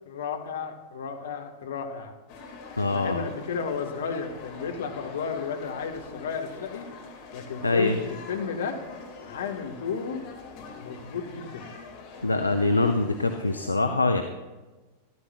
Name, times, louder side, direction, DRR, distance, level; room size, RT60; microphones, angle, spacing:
voice 1, 0.1-2.1 2.9-6.9 7.3-8.8 9.2-10.2 10.8-11.7, left 6 dB, 60° left, 5 dB, 1.0 m, -33 dB
sound 1, 2.3-13.7, left 4 dB, 45° left, 1.7 m, -44 dB
voice 2, 2.8-3.2 7.6-8.0 12.2-14.2, left 2 dB, 80° left, 6 dB, 0.5 m, -24 dB
13.5 x 13.0 x 2.2 m, 1.2 s
figure-of-eight pair, 90°, 0 cm